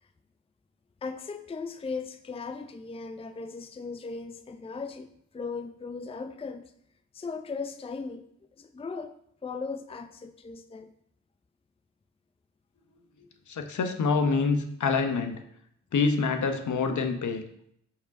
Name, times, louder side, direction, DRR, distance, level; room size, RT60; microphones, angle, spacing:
voice 1, 1.0-6.7 7.1-8.3 8.6-9.1 9.4-10.9, left 4 dB, 20° left, 9 dB, 0.5 m, -37 dB
voice 2, 13.5-15.4 15.9-17.4, left 4 dB, 65° left, 5 dB, 0.9 m, -26 dB
5.4 x 4.7 x 5.2 m, 0.72 s
cardioid pair, 55°, 32 cm